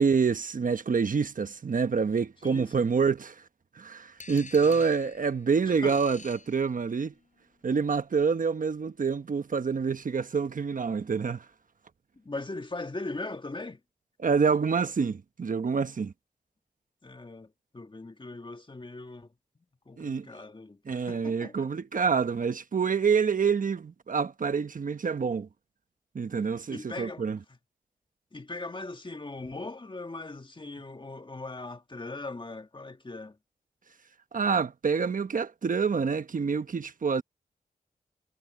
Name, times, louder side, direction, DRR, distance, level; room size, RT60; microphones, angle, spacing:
voice 1, 0.0-3.4 3.7-7.1 7.6-11.5 14.2-16.1 20.0-20.3 20.9-25.5 26.1-27.4 34.3-37.2, right 5 dB, 60° right, 1.1 m, -27 dB
voice 2, 2.4-2.9 4.6-4.8 5.7-6.0 12.1-13.8 17.0-19.3 19.9-21.7 26.7-27.3 28.3-33.4, left 2 dB, 30° left, 1.8 m, -40 dB
sound 1, 4.2-7.2, left 4 dB, 55° left, 4.9 m, -48 dB
cardioid pair, 45°, 15 cm